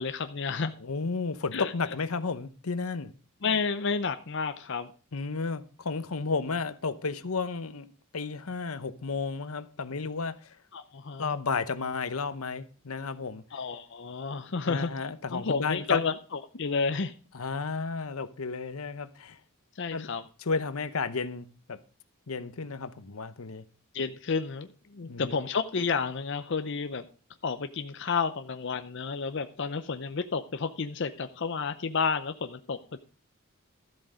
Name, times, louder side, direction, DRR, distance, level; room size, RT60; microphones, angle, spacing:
voice 1, 0.0-0.7 1.5-1.7 3.4-4.9 10.7-11.4 13.5-14.9 15.3-17.1 19.8-20.2 23.9-27.0 27.4-33.0, left 5 dB, 55° left, 0.6 m, -31 dB
voice 2, 0.8-3.1 5.1-7.9 8.1-10.5 11.2-13.4 14.6-16.0 17.3-19.4 19.9-20.1 20.5-21.8 22.3-23.6 25.0-25.4, left 4 dB, 80° left, 0.9 m, -32 dB
13.0 x 7.7 x 5.0 m
head